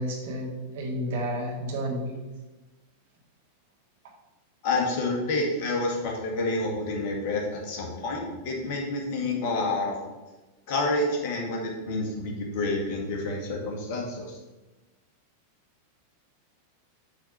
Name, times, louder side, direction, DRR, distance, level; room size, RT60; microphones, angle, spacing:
voice 1, 0.0-2.2, equal, 55° right, -1 dB, 2.2 m, -31 dB
voice 2, 4.6-10.0 10.7-14.4, left 2 dB, 50° left, 0 dB, 2.0 m, -28 dB
7.9 x 4.3 x 6.0 m, 1.1 s
figure-of-eight pair, 90°, 0 cm